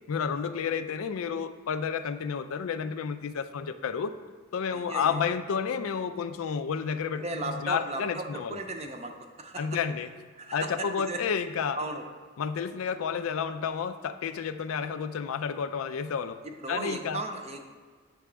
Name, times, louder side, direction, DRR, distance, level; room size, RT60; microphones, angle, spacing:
voice 1, 0.1-4.1 4.5-8.6 9.6-10.1 10.5-11.8 12.4-16.4 16.7-17.2, left 6 dB, 85° left, 11 dB, 0.4 m, -31 dB
voice 2, 4.7-5.2 7.1-9.1 9.4-9.7 10.4-11.2 11.7-12.0 16.6-17.7, right 2 dB, 30° right, 4 dB, 0.5 m, -36 dB
8.4 x 3.4 x 6.0 m, 1.5 s
head